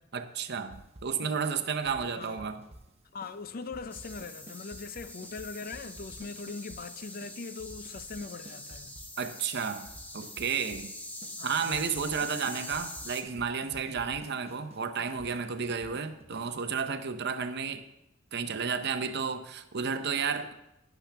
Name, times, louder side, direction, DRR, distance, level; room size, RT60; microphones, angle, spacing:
voice 1, 0.1-2.6 9.2-9.9 10.1-10.9 11.4-17.8 18.3-20.5, right 6 dB, 55° right, 0.8 m, -32 dB
sound 1, 0.7-1.3 1.6-2.9 3.2-3.4 3.6-6.8 7.2-7.3 7.6-9.3 9.6-10.9 11.2-11.3 11.6-16.7, right 1 dB, 30° right, 1.0 m, -50 dB
voice 2, 2.1-2.5 3.1-9.0 11.4-12.0, left 4 dB, 45° left, 0.5 m, -41 dB
sound 2, 3.9-13.2, left 1 dB, 10° left, 0.9 m, -44 dB
11.5 x 10.5 x 3.4 m
head